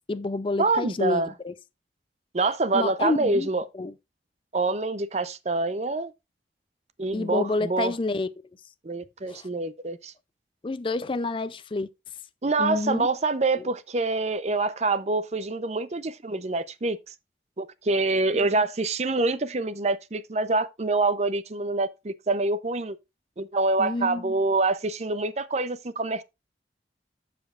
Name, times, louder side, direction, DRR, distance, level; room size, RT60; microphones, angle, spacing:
voice 1, 0.1-1.5 2.7-3.5 3.7-3.9 7.1-8.3 9.3-9.5 10.6-11.9 12.6-13.1 13.5-13.6 23.8-24.3, left 2 dB, 30° left, 0.4 m, -28 dB
voice 2, 0.6-1.3 2.3-3.6 4.5-6.1 7.0-7.9 8.8-10.1 12.4-17.0 17.6-23.0 23.4-26.2, right 3 dB, 40° right, 0.6 m, -26 dB
14.5 x 5.1 x 2.4 m
head